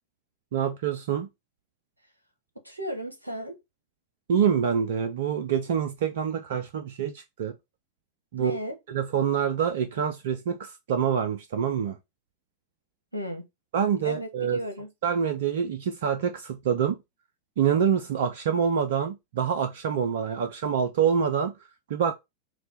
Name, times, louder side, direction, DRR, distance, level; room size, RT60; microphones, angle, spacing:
voice 1, 0.5-1.3 4.3-7.5 8.3-8.6 8.9-12.0 13.7-14.6 15.0-17.0 17.6-21.5 21.9-22.1, right 7 dB, 55° right, 0.4 m, -26 dB
voice 2, 2.6-3.6 8.4-8.8 13.1-13.4 14.0-14.9, equal, 85° right, 0.8 m, -34 dB
4.1 x 2.2 x 4.2 m
figure-of-eight pair, 90°, 0 cm